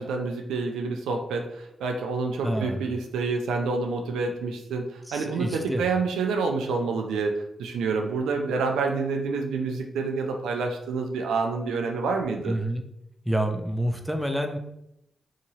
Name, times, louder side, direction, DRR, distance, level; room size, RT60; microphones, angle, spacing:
voice 1, 0.0-4.9 5.1-7.3 7.6-12.6, right 4 dB, 90° right, 3 dB, 0.3 m, -28 dB
voice 2, 2.4-2.8 5.1-5.8 12.4-12.8 13.3-14.6, right 1 dB, ahead, 4 dB, 0.5 m, -28 dB
2.8 x 2.7 x 2.6 m, 0.81 s
supercardioid pair, 45°, 0 cm